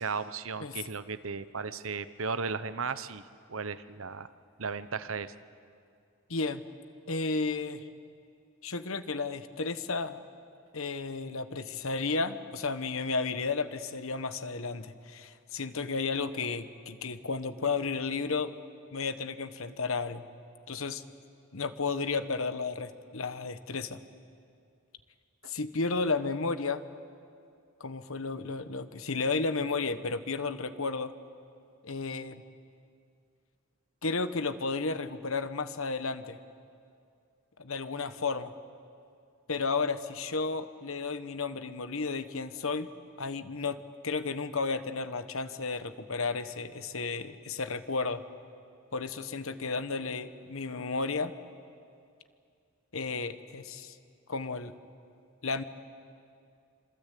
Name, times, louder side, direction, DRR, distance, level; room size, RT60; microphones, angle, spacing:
voice 1, 0.0-3.2 3.5-4.3 4.6-5.3 25.4-25.5, right 5 dB, 65° right, 13 dB, 0.9 m, -35 dB
voice 2, 6.3-6.6 7.1-7.9 8.6-10.2 10.7-18.5 18.9-20.2 20.7-21.0 21.5-24.0 25.5-26.8 27.8-31.1 31.8-32.4 34.0-36.4 37.6-38.5 39.5-42.9 43.2-43.8 44.0-48.2 48.9-51.3 52.9-53.9 54.3-54.7 55.4-55.6, left 4 dB, 70° left, 11 dB, 1.2 m, -33 dB
26.5 x 26.0 x 8.5 m, 2.4 s
head